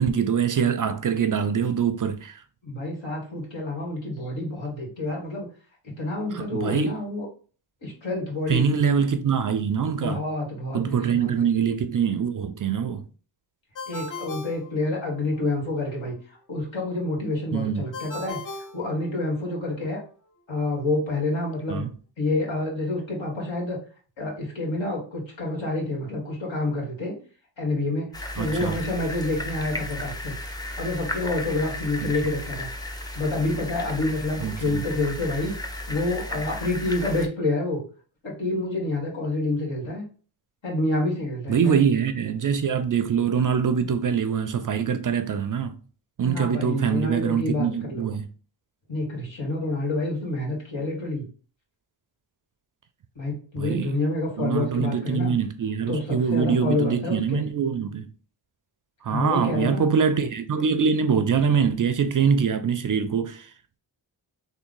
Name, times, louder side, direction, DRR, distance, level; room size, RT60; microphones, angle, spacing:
voice 1, 0.0-2.4 6.3-7.0 8.5-10.2 10.7-13.0 17.5-17.9 21.7-21.9 28.4-28.7 32.0-32.1 34.4-34.8 41.5-45.8 46.2-48.3 53.6-53.9 54.4-58.1 59.0-63.5, right 7 dB, 45° right, 0.4 m, -24 dB
voice 2, 2.6-5.5 6.0-7.3 7.8-8.8 10.0-11.5 13.9-16.2 16.5-18.4 18.7-20.0 20.5-21.8 22.2-23.8 24.2-27.2 27.6-30.4 30.8-32.7 33.1-35.5 35.9-37.8 38.2-40.0 40.6-41.8 46.2-48.1 48.9-51.3 53.2-55.4 55.9-57.5 59.1-59.9, left 2 dB, 70° left, 1.7 m, -28 dB
Ringtone, 13.7-15.4 17.9-19.6, left 3 dB, 40° left, 0.8 m, -38 dB
sound 1, 28.1-37.3, left 1 dB, 10° left, 0.5 m, -34 dB
3.5 x 2.2 x 3.7 m
cardioid pair, 50°, 48 cm